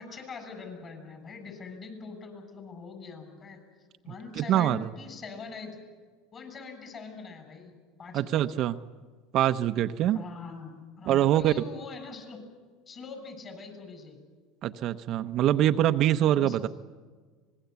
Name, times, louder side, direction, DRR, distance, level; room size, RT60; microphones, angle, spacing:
voice 1, 0.0-3.6 4.0-5.8 6.3-8.4 10.1-12.4 12.9-14.2 16.2-16.6, left 4 dB, 35° left, 7 dB, 7.2 m, -43 dB
voice 2, 4.4-4.9 8.1-8.8 9.3-10.2 11.1-11.5 14.6-16.7, right 12 dB, 50° right, 9 dB, 0.9 m, -24 dB
25.0 x 20.5 x 8.3 m, 1.5 s
supercardioid pair, 115°, 0 cm